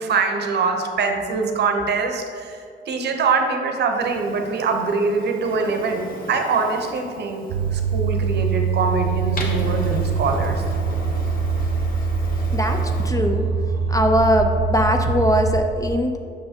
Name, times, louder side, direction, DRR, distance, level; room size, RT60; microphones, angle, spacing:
voice 1, 0.0-7.4 7.7-10.6, right 4 dB, 60° right, 4 dB, 0.7 m, -23 dB
Printer, 4.0-13.1, left 1 dB, 45° left, 1.0 m, -38 dB
sound 1, 7.5-15.6, right 5 dB, 85° right, 0.4 m, -23 dB
voice 2, 12.5-13.5 13.9-16.2, equal, 15° left, 4 dB, 0.4 m, -20 dB
6.5 x 5.5 x 2.8 m, 2.2 s
cardioid pair, 90°, 20 cm